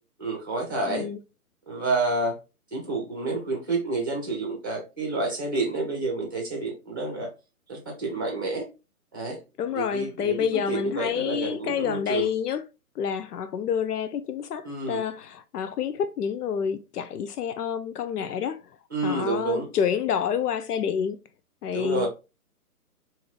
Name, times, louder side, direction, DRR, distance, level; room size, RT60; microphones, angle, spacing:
voice 1, 0.2-1.1 1.7-2.4 2.7-7.3 7.7-8.7 9.1-9.4 9.7-12.3 14.6-15.0 18.9-19.7 21.7-22.1, right 2 dB, 15° right, 0.6 m, -29 dB
voice 2, 0.9-1.2 9.6-12.6 13.0-18.6 19.0-21.2 21.6-22.1, left 7 dB, 85° left, 0.5 m, -28 dB
3.7 x 2.7 x 3.1 m
hypercardioid pair, 175°, 45 cm